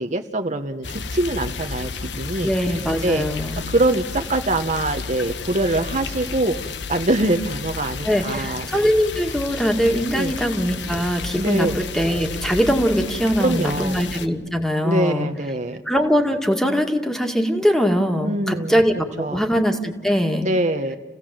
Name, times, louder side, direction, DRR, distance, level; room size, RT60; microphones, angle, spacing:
voice 1, 0.0-1.9 2.2-2.5 3.0-3.3 3.7-6.5 6.9-8.9 10.1-10.3 11.3-11.8 13.4-14.0 14.8-15.8 18.2-18.8 19.2-19.5 20.4-21.0, right 2 dB, 45° right, 6 dB, 1.0 m, -23 dB
sound 1, 0.8-14.3, left 5 dB, 80° left, 1.2 m, -32 dB
voice 2, 2.4-3.6 8.0-15.3 15.9-20.5, equal, 5° left, 4 dB, 2.0 m, -21 dB
28.5 x 17.0 x 7.7 m, 1.2 s
head